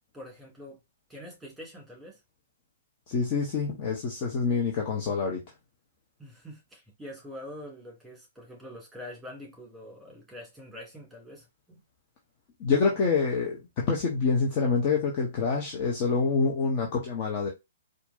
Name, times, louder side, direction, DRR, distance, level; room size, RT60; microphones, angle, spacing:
voice 1, 0.1-0.8 1.1-2.2 6.2-11.8, left 1 dB, 5° right, 2.3 m, -45 dB
voice 2, 3.1-5.4 12.6-17.5, left 4 dB, 35° left, 0.9 m, -26 dB
4.4 x 2.6 x 2.7 m
figure-of-eight pair, 120°, 0 cm